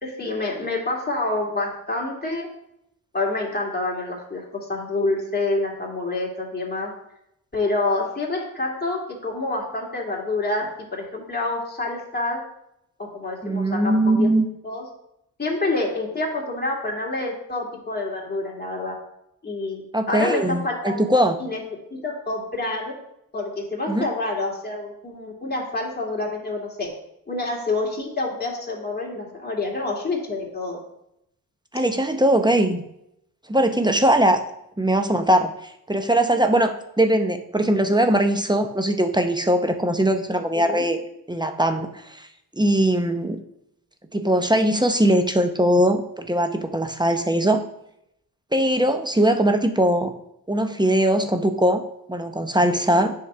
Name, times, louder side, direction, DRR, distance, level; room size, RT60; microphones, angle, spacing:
voice 1, 0.0-2.5 3.1-6.9 7.5-12.4 13.0-14.3 14.6-14.8 15.4-18.9 19.4-19.8 20.1-21.6 21.9-22.9 23.3-26.9 27.3-30.8 40.6-40.8, left 2 dB, 25° left, -2 dB, 2.5 m, -27 dB
voice 2, 13.4-14.5 19.9-21.4 23.9-24.0 31.7-32.8 33.5-34.4 34.8-41.0 41.3-42.3 42.5-43.4 44.1-47.6 48.5-50.1 50.5-51.8 52.1-53.1, right 1 dB, 10° right, 6 dB, 0.8 m, -20 dB
8.3 x 3.8 x 5.5 m, 0.79 s
cardioid pair, 60°, 38 cm